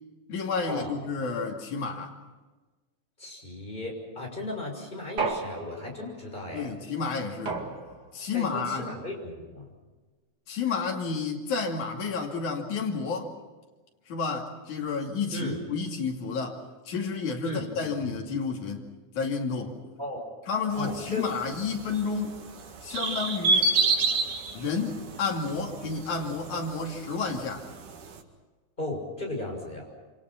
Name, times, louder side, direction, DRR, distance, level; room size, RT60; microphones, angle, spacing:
voice 1, 0.3-2.1 6.5-7.6 8.1-8.9 10.5-13.3 14.1-18.8 19.2-19.8 20.5-22.4 22.8-23.7 24.5-27.7, left 5 dB, 80° left, 0 dB, 4.0 m, -31 dB
voice 2, 3.2-6.7 8.3-9.7 15.3-15.6 17.4-18.2 20.0-20.2 20.7-21.2 28.8-29.9, left 1 dB, 15° left, 1 dB, 6.5 m, -36 dB
sound 1, 5.2-6.2 7.5-8.3, right 4 dB, 35° right, 2.7 m, -33 dB
sound 2, 20.7-28.2, right 3 dB, 90° right, 3.6 m, -30 dB
28.0 x 26.5 x 5.9 m, 1.2 s
omnidirectional pair, 3.4 m